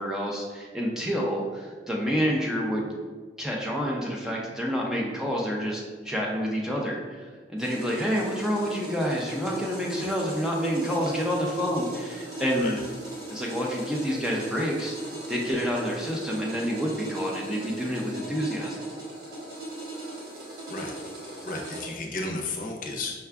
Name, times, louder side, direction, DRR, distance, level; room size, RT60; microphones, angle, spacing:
voice 1, 0.0-2.9 3.4-12.8 13.3-15.0 15.3-18.8, equal, 5° right, -3 dB, 0.4 m, -28 dB
sound 1, 7.6-21.9, right 2 dB, 80° right, 1.2 m, -38 dB
voice 2, 21.5-23.1, left 2 dB, 50° left, 1 dB, 0.6 m, -33 dB
5.5 x 2.3 x 3.4 m, 1.5 s
head